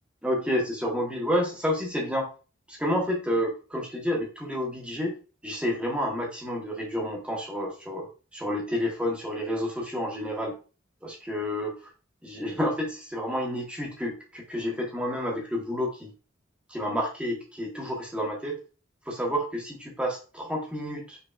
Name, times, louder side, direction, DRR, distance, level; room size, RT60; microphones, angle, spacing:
voice 1, 0.2-2.3 2.7-5.1 5.4-8.1 8.3-10.5 11.0-11.8 12.2-16.1 16.7-18.6 19.1-21.2, equal, 5° right, -1 dB, 1.2 m, -29 dB
5.4 x 3.9 x 2.4 m, 0.34 s
head